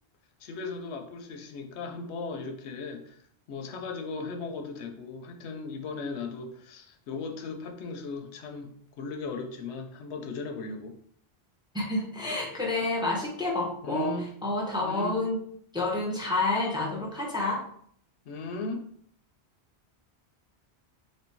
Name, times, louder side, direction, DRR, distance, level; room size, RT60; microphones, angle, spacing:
voice 1, 0.4-3.2 3.5-11.0 13.8-14.3 14.8-15.2 18.3-18.8, left 4 dB, 90° left, 5 dB, 0.9 m, -37 dB
voice 2, 11.7-14.1 14.4-15.4 15.7-17.6, left 2 dB, 5° right, -1 dB, 0.6 m, -29 dB
3.2 x 2.6 x 4.4 m, 0.62 s
omnidirectional pair, 1.1 m